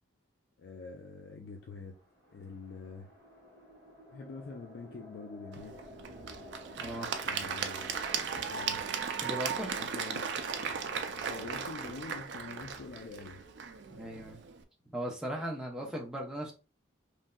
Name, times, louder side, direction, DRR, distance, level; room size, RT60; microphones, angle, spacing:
voice 1, 0.6-2.0 2.3-3.1 4.1-5.8 7.2-8.0 8.4-8.8 9.8-10.3 11.2-13.4 15.8-15.9, left 4 dB, 55° left, 0.4 m, -45 dB
sound 1, 1.5-11.9, left 1 dB, 15° left, 1.1 m, -54 dB
Applause / Crowd, 5.5-14.6, right 6 dB, 60° right, 0.4 m, -37 dB
voice 2, 6.8-7.4 9.2-9.8 13.9-14.4 14.9-16.5, equal, 5° right, 0.7 m, -38 dB
3.1 x 2.6 x 2.2 m
head